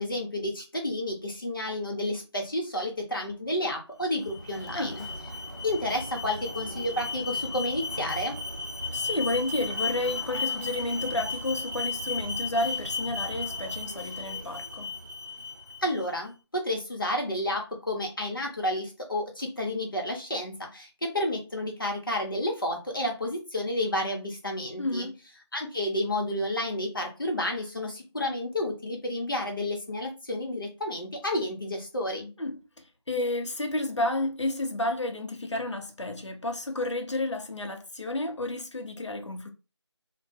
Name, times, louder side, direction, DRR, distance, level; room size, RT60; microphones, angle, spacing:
voice 1, 0.0-5.0 5.6-8.4 15.8-25.1 25.5-32.3, left 1 dB, 50° left, 0.8 m, -31 dB
Alarm, 4.0-16.1, left 3 dB, 40° right, 0.7 m, -35 dB
voice 2, 8.9-14.9 24.8-25.2 32.4-39.5, left 2 dB, 85° left, 0.6 m, -31 dB
2.1 x 2.1 x 3.1 m
figure-of-eight pair, 170°, 15 cm